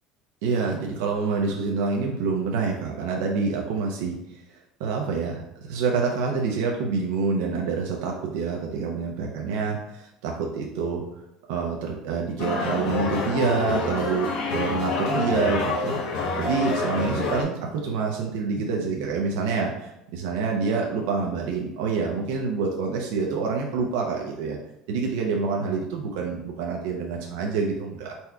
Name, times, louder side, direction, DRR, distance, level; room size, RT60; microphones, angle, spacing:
voice 1, 0.4-11.0 11.5-24.6 24.9-28.2, right 4 dB, 90° right, 0 dB, 0.6 m, -27 dB
sound 1, 12.4-17.4, left 3 dB, 65° left, 0.9 m, -27 dB
4.1 x 2.3 x 4.7 m, 0.86 s
cardioid pair, 145°, 0 cm